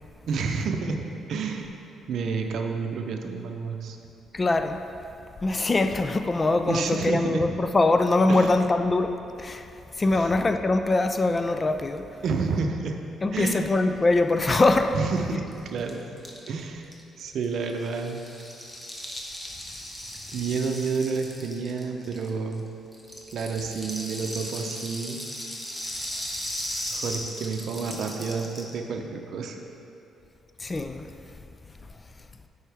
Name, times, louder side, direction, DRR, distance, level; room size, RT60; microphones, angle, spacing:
voice 1, 0.3-1.7 2.1-4.0 6.7-7.4 8.3-8.6 10.1-10.3 12.2-13.0 13.3-13.7 14.9-16.0 16.5-16.9 17.2-18.2 20.3-22.7 23.3-25.2 26.9-29.6, right 4 dB, 70° right, 4 dB, 0.6 m, -29 dB
voice 2, 4.3-4.8 5.4-9.7 10.0-12.0 13.2-14.9 30.6-31.1, left 2 dB, 30° left, 8 dB, 0.4 m, -23 dB
Rattle (instrument), 14.9-15.0 15.2-15.3 15.5-22.6 22.9-28.8, equal, 15° left, 1.0 m, -37 dB
9.2 x 4.7 x 3.4 m, 2.7 s
cardioid pair, 90°, 0 cm